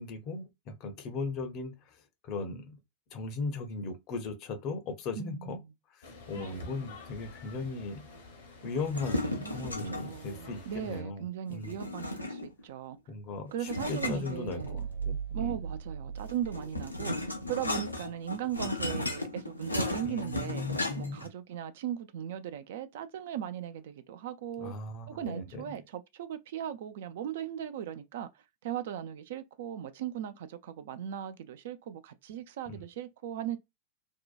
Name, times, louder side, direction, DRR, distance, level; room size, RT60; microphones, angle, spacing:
voice 1, 0.0-2.8 3.1-5.6 5.9-8.0 8.6-11.7 13.1-15.6 20.0-21.2 24.6-25.7 32.7-32.8, left 3 dB, 40° left, 0.6 m, -38 dB
voice 2, 5.2-5.6 6.4-6.8 9.4-9.6 9.9-13.0 13.5-14.8 15.3-20.7 21.0-24.7 25.1-28.3 28.6-33.6, right 10 dB, 55° right, 0.3 m, -38 dB
sound 1, 6.0-11.0, left 3 dB, 65° left, 0.9 m, -49 dB
sound 2, 8.8-10.2 11.6-12.6 13.6-15.0 16.2-21.3, left 2 dB, 85° left, 0.5 m, -35 dB
sound 3, 14.6-18.0, right 6 dB, 70° right, 0.7 m, -39 dB
2.7 x 2.1 x 2.3 m
figure-of-eight pair, 90°, 0 cm